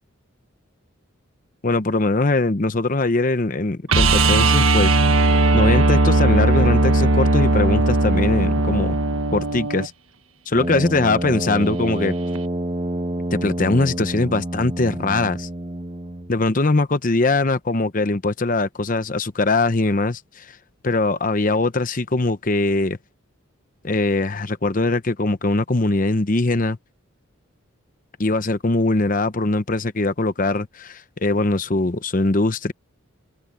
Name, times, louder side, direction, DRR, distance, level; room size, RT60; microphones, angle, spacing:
voice 1, 1.6-5.0 5.5-9.0 9.3-9.9 10.5-12.1 13.3-15.5 16.3-20.6 20.8-23.0 23.8-26.8 28.2-32.7, left 2 dB, 40° left, 0.8 m, -21 dB
sound 1, 3.9-9.9 12.4-12.5, right 2 dB, 80° right, 1.4 m, -17 dB
Brass instrument, 10.5-16.4, right 1 dB, 25° right, 1.0 m, -28 dB
open air
head